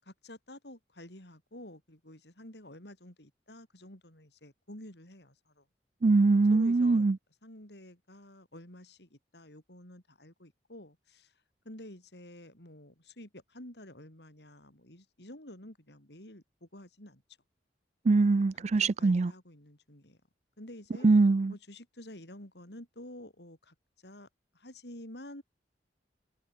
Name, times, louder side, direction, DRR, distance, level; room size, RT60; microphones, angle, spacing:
voice 1, 0.0-5.6 6.5-7.1 7.4-17.2 18.5-20.2 20.6-21.1 21.5-24.3 24.5-25.4, left 1 dB, 65° left, 6.7 m, -50 dB
voice 2, 6.0-7.2 18.1-19.3 21.0-21.5, right 3 dB, 40° right, 0.4 m, -23 dB
head